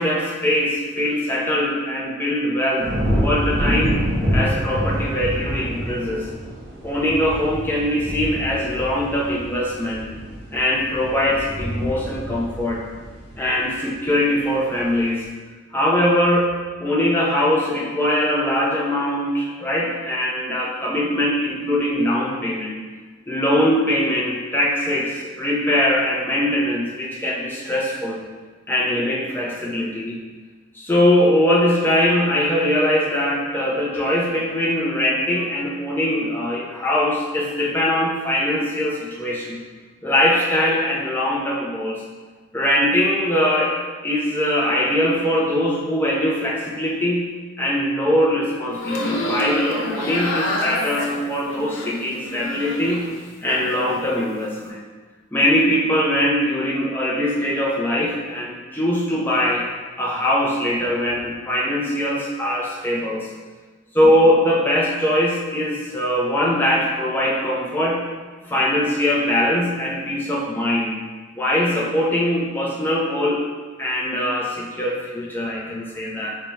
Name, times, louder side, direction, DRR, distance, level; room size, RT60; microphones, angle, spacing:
voice 1, 0.0-4.0 4.3-6.3 6.8-10.1 10.5-12.9 13.4-15.3 15.7-22.8 23.3-28.2 28.7-30.2 30.7-39.6 40.0-42.0 42.5-43.7 44.0-53.1 53.4-54.8 55.3-59.7 60.0-63.3 63.9-68.1 68.4-71.0 71.4-73.4 73.8-76.3, left 1 dB, 10° left, -5 dB, 0.5 m, -21 dB
sound 1, 2.8-14.1 14.5-15.0, equal, 55° right, 1.0 m, -27 dB
sound 2, 48.7-53.2 53.5-54.2, left 1 dB, 80° left, 0.5 m, -28 dB
3.9 x 2.2 x 3.1 m, 1.4 s
head